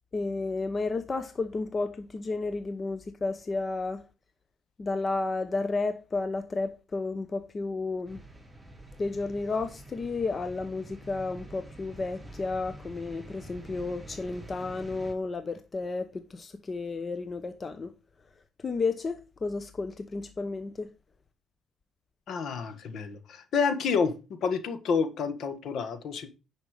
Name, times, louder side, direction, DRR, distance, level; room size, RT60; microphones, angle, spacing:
voice 1, 0.1-4.0 4.8-8.2 9.0-17.9 18.6-20.9, left 3 dB, 35° left, 0.9 m, -32 dB
sound 1, 8.0-15.1, right 1 dB, 15° right, 5.5 m, -47 dB
voice 2, 22.3-24.1 24.4-26.3, left 5 dB, 65° left, 1.6 m, -29 dB
10.0 x 5.4 x 4.9 m
cardioid pair, 80°, 0 cm